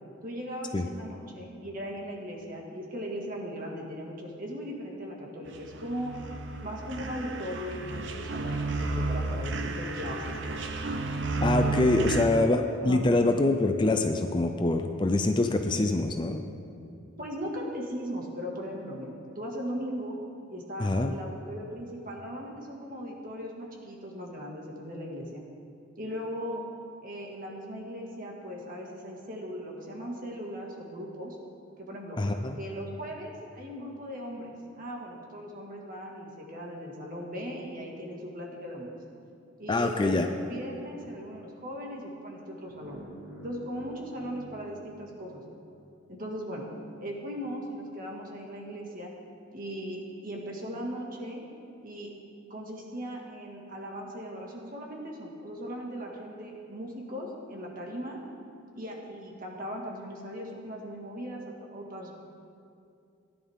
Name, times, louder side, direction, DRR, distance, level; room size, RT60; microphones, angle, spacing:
voice 1, 0.2-6.1 6.6-10.8 11.6-12.1 12.8-13.1 17.2-20.2 20.5-25.4 26.0-26.6 27.0-31.4 31.8-32.2 32.6-38.9 39.6-43.0 43.4-45.4 46.1-46.7 47.0-49.1 49.5-51.4 51.8-52.1 52.5-58.2 58.7-62.1, equal, 45° right, -1 dB, 1.9 m, -38 dB
sound 1, 5.5-12.2, right 3 dB, 60° right, 0.8 m, -32 dB
voice 2, 11.4-16.4 20.8-21.1 32.2-32.6 39.7-40.3, left 2 dB, 25° left, 6 dB, 0.4 m, -25 dB
sound 2, 42.7-45.7, equal, 90° right, 2.4 m, -48 dB
16.5 x 11.0 x 3.6 m, 2.5 s
head